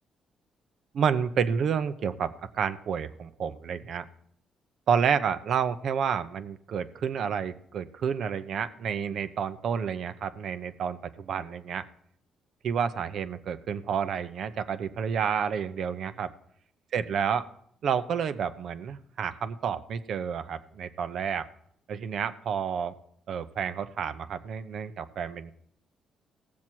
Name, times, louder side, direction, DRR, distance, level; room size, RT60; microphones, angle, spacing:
voice 1, 0.9-4.0 4.9-11.8 12.6-16.3 16.9-17.5 17.8-21.5 21.9-23.0 23.3-25.5, right 7 dB, 65° right, 11 dB, 0.8 m, -30 dB
17.0 x 7.3 x 4.6 m, 0.69 s
cardioid pair, 90°, 0 cm